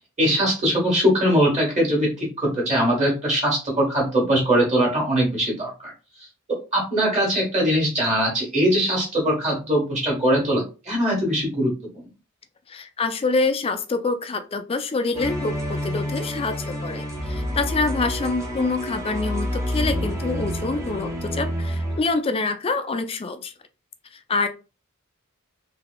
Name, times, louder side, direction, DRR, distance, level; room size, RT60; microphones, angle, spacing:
voice 1, 0.2-5.9 6.2-11.7, equal, 35° right, -4 dB, 1.6 m, -21 dB
voice 2, 12.7-23.5 24.3-24.5, left 3 dB, 25° left, 9 dB, 0.4 m, -26 dB
sound 1, 15.1-22.0, equal, 15° right, 0.7 m, -28 dB
3.8 x 2.7 x 2.2 m, 0.31 s
head